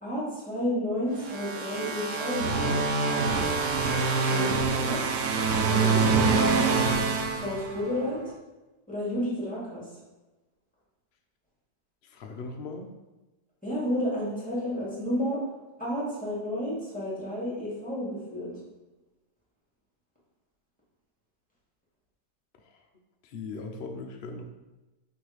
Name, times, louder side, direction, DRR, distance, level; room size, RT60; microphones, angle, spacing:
voice 1, 0.0-2.8 4.3-5.0 5.7-6.8 7.4-8.2 8.9-9.9 13.6-15.4 15.8-18.5, left 1 dB, 5° left, -6 dB, 2.0 m, -31 dB
sound 1, 1.2-8.1, right 4 dB, 60° right, 0.8 m, -25 dB
voice 2, 12.0-12.9 22.6-22.8 23.2-24.4, left 3 dB, 60° left, 3 dB, 0.6 m, -39 dB
6.2 x 3.3 x 5.0 m, 1.1 s
omnidirectional pair, 1.9 m